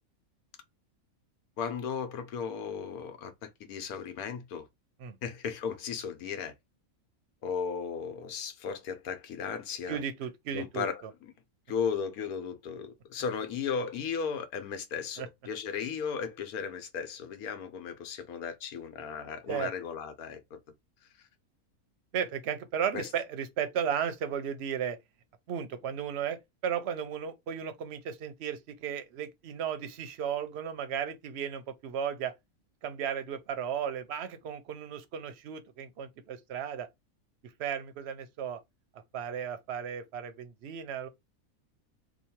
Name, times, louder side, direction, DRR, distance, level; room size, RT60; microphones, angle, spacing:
voice 1, 1.6-4.7 5.2-6.5 7.4-10.0 10.5-11.3 11.7-20.6 22.9-23.1, left 6 dB, 85° left, 1.2 m, -36 dB
voice 2, 9.9-10.9 15.2-15.3 19.5-19.7 22.1-25.0 25.5-32.3 32.8-36.9 37.4-38.6 39.1-41.1, right 8 dB, 60° right, 0.8 m, -35 dB
3.0 x 2.3 x 4.2 m
omnidirectional pair, 1.5 m